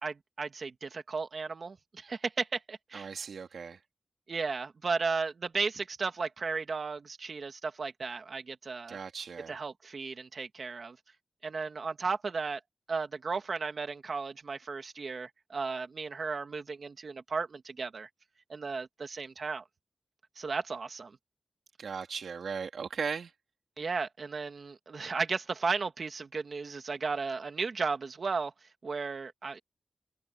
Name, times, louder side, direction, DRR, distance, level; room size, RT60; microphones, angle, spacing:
voice 1, 0.0-3.1 4.3-9.0 9.5-11.0 11.4-12.6 12.9-18.1 18.5-19.6 20.4-21.2 23.8-28.5 28.8-29.6, right 4 dB, 50° right, 2.1 m, -35 dB
voice 2, 2.9-3.8 8.9-9.6 21.8-23.3, right 6 dB, 80° right, 2.9 m, -37 dB
wide cardioid pair, 140°, 0 cm